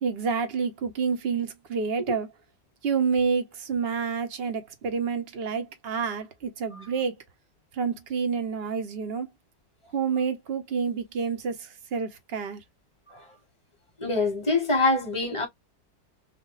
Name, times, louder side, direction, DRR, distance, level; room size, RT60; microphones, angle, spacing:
voice 1, 0.0-2.3 2.8-7.2 7.7-9.3 9.9-12.6, right 5 dB, 45° right, 0.9 m, -28 dB
voice 2, 14.0-15.5, left 3 dB, 20° left, 1.3 m, -25 dB
3.5 x 2.1 x 3.8 m
omnidirectional pair, 1.7 m